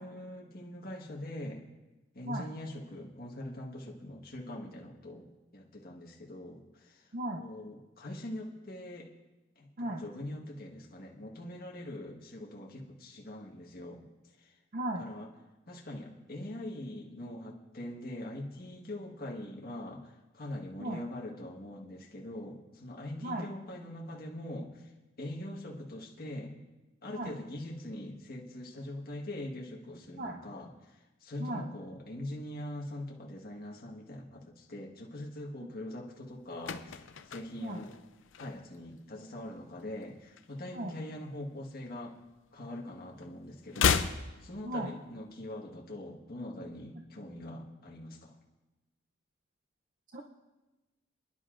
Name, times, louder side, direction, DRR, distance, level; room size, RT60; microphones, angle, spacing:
voice 1, 0.0-1.6 2.1-7.0 7.4-9.1 9.6-14.1 14.4-14.5 15.0-15.3 15.7-24.9 25.2-26.6 27.0-30.7 31.2-37.9 38.4-42.2 42.5-44.1 44.4-48.3, left 1 dB, 50° left, -2 dB, 1.5 m, -42 dB
voice 2, 7.1-7.4 9.8-10.0 14.7-15.1 20.8-21.0 23.2-23.4 27.1-27.3 30.2-30.4 31.4-31.6 37.6-37.8 40.7-40.9 44.6-44.9 50.1-50.2, right 1 dB, 45° right, 2 dB, 0.7 m, -36 dB
sound 1, 36.3-38.9 39.2-39.5 39.8-41.3 41.5-42.9 43.1-45.3 45.5-45.6, left 6 dB, 75° left, 0.6 m, -34 dB
28.0 x 10.5 x 2.6 m, 1.1 s
head